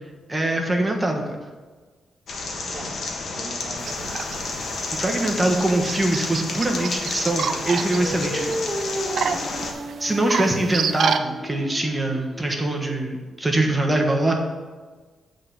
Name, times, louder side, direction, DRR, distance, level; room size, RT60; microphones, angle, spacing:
voice 1, 0.3-1.4 4.9-8.7 10.0-14.3, right 1 dB, 15° right, 1 dB, 1.3 m, -23 dB
sound 1, 2.3-9.7, left 3 dB, 60° left, 1.3 m, -31 dB
voice 2, 2.7-3.0 3.3-4.4 9.3-9.7, right 2 dB, 35° right, -4 dB, 1.2 m, -40 dB
sound 2, 3.8-11.2, right 6 dB, 70° right, 0.5 m, -30 dB
Singing, 7.9-13.2, equal, 15° left, 1.4 m, -34 dB
8.3 x 3.9 x 7.0 m, 1.4 s
cardioid pair, 110°, 0 cm